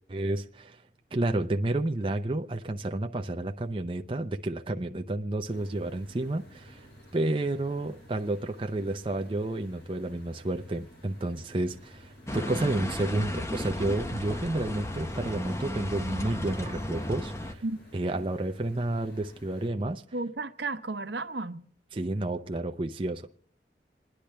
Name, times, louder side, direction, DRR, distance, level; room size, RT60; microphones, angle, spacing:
voice 1, 0.1-0.8 1.1-6.9 7.1-17.6 17.9-20.0 21.9-23.5, right 2 dB, 30° right, 0.6 m, -31 dB
sound 1, 5.5-19.7, equal, 65° left, 6.8 m, -53 dB
sound 2, 12.3-17.5, left 1 dB, 15° left, 0.8 m, -34 dB
voice 2, 20.1-21.6, right 3 dB, 75° right, 1.0 m, -33 dB
28.0 x 10.5 x 3.3 m
head